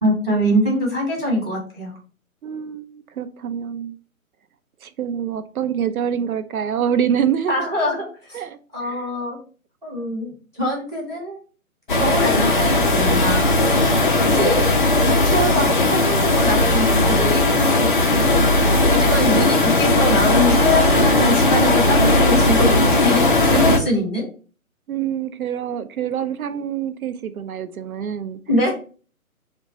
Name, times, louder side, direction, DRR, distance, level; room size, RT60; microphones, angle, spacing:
voice 1, 0.0-1.9 7.5-8.4 8.7-9.4 9.8-10.3 10.5-11.4 11.9-13.4 14.2-14.8 15.3-18.4 18.9-22.7 23.0-24.2 28.5-28.7, left 1 dB, 5° right, -11 dB, 0.8 m, -23 dB
voice 2, 2.4-4.0 4.8-7.7 8.3-9.1 24.9-28.4, right 8 dB, 75° right, 11 dB, 0.5 m, -26 dB
sound 1, 11.9-23.8, left 2 dB, 40° left, 0.4 m, -17 dB
2.5 x 2.2 x 3.9 m, 0.39 s
figure-of-eight pair, 145°, 43 cm